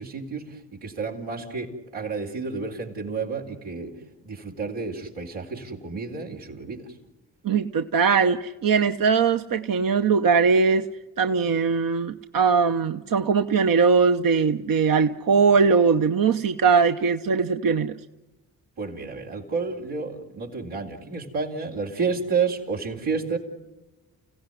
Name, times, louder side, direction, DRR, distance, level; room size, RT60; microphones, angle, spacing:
voice 1, 0.0-3.9 4.2-6.9 18.8-23.4, right 5 dB, 85° right, -1 dB, 4.2 m, -30 dB
voice 2, 7.4-10.9 11.2-17.9, right 5 dB, 55° right, 7 dB, 1.0 m, -20 dB
29.5 x 16.5 x 9.7 m, 1.1 s
supercardioid pair, 50°, 39 cm